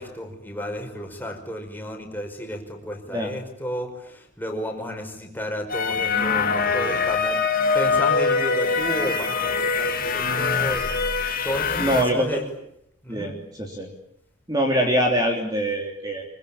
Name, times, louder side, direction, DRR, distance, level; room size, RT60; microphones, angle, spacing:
voice 1, 0.0-12.5 13.0-13.3, equal, 10° left, 3 dB, 5.2 m, -33 dB
sound 1, 5.7-12.0, left 4 dB, 40° left, 2.8 m, -23 dB
voice 2, 11.8-12.4 13.1-13.9 14.5-16.3, equal, 20° right, 1 dB, 3.3 m, -24 dB
25.5 x 24.5 x 8.7 m, 0.74 s
head